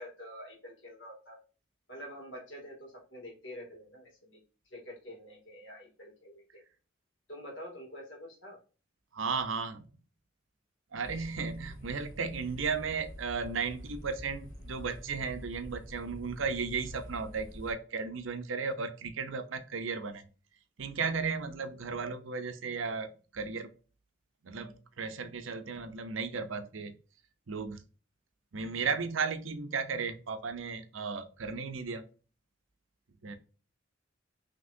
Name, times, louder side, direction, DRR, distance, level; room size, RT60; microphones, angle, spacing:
voice 1, 0.0-1.4 1.9-4.4 4.7-6.6 7.3-8.6, equal, 65° left, -1 dB, 2.3 m, -47 dB
voice 2, 9.1-9.8 10.9-20.3 20.8-23.7 24.4-26.9 27.5-27.8 28.5-32.1 33.2-33.4, right 5 dB, 80° right, 9 dB, 0.7 m, -35 dB
sound 1, 11.0-17.7, equal, 35° left, 2.3 m, -47 dB
5.9 x 3.0 x 2.7 m, 0.34 s
head